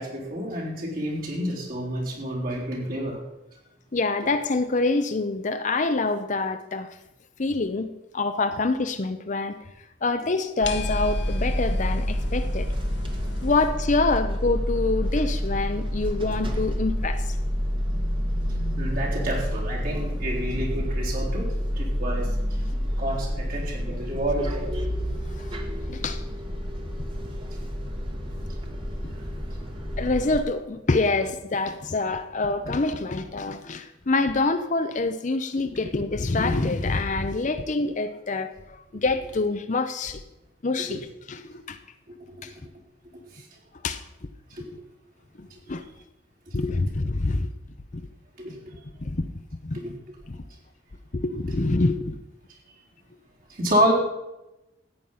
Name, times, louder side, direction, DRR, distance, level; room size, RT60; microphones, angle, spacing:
voice 1, 0.0-3.2 18.8-22.3 23.0-24.7 40.9-41.0 43.3-43.4 44.7-44.8 48.4-48.5 49.7-49.9 53.5-53.9, equal, 50° right, -3 dB, 3.7 m, -28 dB
voice 2, 3.9-6.9 7.4-7.9 8.1-9.6 10.0-12.7 13.4-17.3 25.4-25.5 25.9-26.2 29.0-29.1 30.0-40.2 40.6-41.8 42.4-42.5 43.8-44.0 45.4-45.8 46.5-47.5 47.9-48.1 49.0-49.3 49.6-49.8 50.3-50.4 51.1-52.2, left 3 dB, 40° left, 9 dB, 0.7 m, -26 dB
sound 1, 10.6-13.5, left 2 dB, 70° left, 1.3 m, -35 dB
sound 2, 10.6-30.4, equal, 30° right, 1.7 m, -28 dB
14.0 x 9.2 x 5.6 m, 0.93 s
head